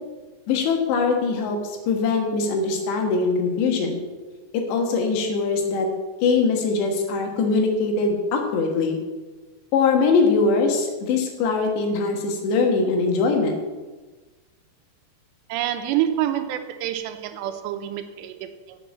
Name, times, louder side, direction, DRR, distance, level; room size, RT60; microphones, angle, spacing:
voice 1, 0.5-1.6 1.9-4.0 4.5-5.9 6.2-9.0 9.7-13.6, left 4 dB, 85° left, 3 dB, 3.6 m, -22 dB
voice 2, 15.5-18.8, right 11 dB, 85° right, 8 dB, 2.9 m, -27 dB
8.1 x 7.5 x 7.2 m, 1.3 s
omnidirectional pair, 4.9 m